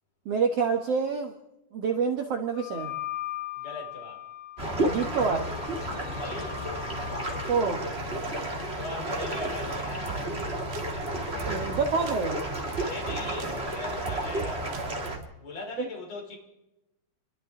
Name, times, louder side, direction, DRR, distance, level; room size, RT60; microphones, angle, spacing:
voice 1, 0.3-1.4 1.7-2.9 4.8-5.5 7.5-7.8 11.5-12.4, right 5 dB, 55° right, 4 dB, 2.3 m, -27 dB
Wind instrument woodwind instrument, 2.5-7.5, left 14 dB, 75° left, 2.9 m, -39 dB
voice 2, 3.5-4.2 5.9-6.6 8.7-10.4 12.8-15.1 15.4-16.4, left 2 dB, 55° left, -1 dB, 6.5 m, -40 dB
sound 1, 4.6-15.2, right 1 dB, 20° right, 3.3 m, -32 dB
sound 2, 9.5-15.3, right 9 dB, 80° right, 2.6 m, -41 dB
30.0 x 23.0 x 3.9 m, 0.91 s
omnidirectional pair, 3.7 m